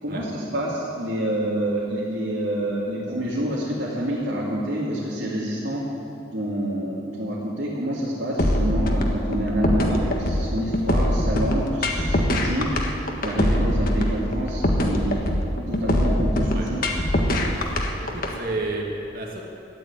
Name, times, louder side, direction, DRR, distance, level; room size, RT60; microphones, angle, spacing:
voice 1, 0.0-5.8 6.3-12.7 13.2-15.3 15.7-16.8, right 1 dB, 75° right, -7 dB, 2.7 m, -27 dB
sound 1, 8.4-18.3, left 1 dB, 45° left, 1.5 m, -22 dB
voice 2, 17.5-19.4, right 2 dB, 50° right, -1 dB, 2.4 m, -32 dB
13.5 x 10.5 x 9.0 m, 3.0 s
head